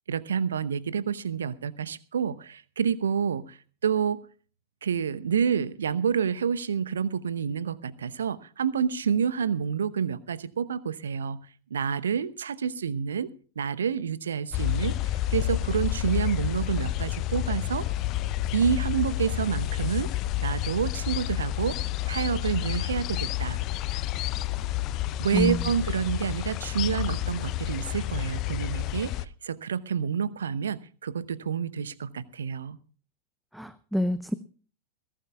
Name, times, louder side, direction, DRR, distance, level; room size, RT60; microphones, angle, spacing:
voice 1, 0.1-4.2 4.8-11.4 11.7-17.9 18.5-20.1 20.4-23.6 25.2-32.8, right 7 dB, 65° right, 16 dB, 0.9 m, -28 dB
sound 1, 14.5-29.2, left 14 dB, 40° left, 0.6 m, -30 dB
voice 2, 33.5-34.3, equal, ahead, 14 dB, 0.7 m, -27 dB
21.5 x 16.5 x 2.3 m, 0.40 s
figure-of-eight pair, 90°, 0 cm